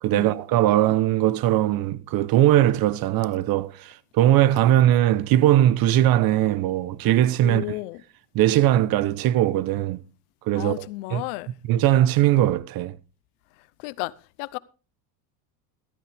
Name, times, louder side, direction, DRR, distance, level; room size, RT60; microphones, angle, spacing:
voice 1, 0.0-7.6 8.3-10.0 10.5-11.2 11.7-13.0, right 13 dB, 50° right, 1.0 m, -20 dB
voice 2, 7.4-8.0 10.5-11.5 13.8-14.1 14.4-14.6, left 21 dB, 80° left, 0.9 m, -32 dB
14.5 x 12.5 x 3.5 m
supercardioid pair, 115°, 44 cm